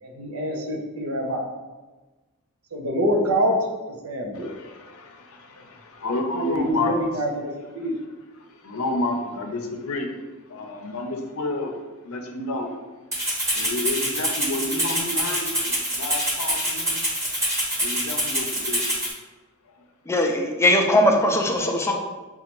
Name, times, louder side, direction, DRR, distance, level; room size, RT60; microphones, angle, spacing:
voice 1, 0.0-1.5 2.7-3.6 3.9-4.5 6.3-7.9 21.6-21.9, equal, 80° right, 2 dB, 0.7 m, -26 dB
voice 2, 4.3-6.9 8.4-10.2 10.5-11.8 12.0-12.7 13.5-17.0 17.8-18.8, left 2 dB, 75° left, 4 dB, 0.5 m, -30 dB
Rattle (instrument), 13.1-19.1, equal, 15° right, 0.9 m, -25 dB
voice 3, 20.1-21.9, left 1 dB, 15° left, 2 dB, 0.4 m, -20 dB
5.2 x 2.3 x 3.0 m, 1.2 s
head